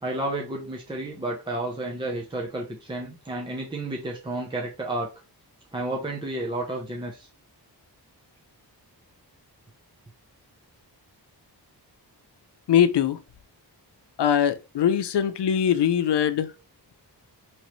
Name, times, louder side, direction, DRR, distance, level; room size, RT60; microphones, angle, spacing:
voice 1, 0.0-5.1 5.7-7.3, right 2 dB, 10° right, 0.6 m, -31 dB
voice 2, 12.7-13.2 14.2-16.5, left 9 dB, 85° left, 0.6 m, -22 dB
5.4 x 3.1 x 3.0 m
wide cardioid pair, 175°, 40 cm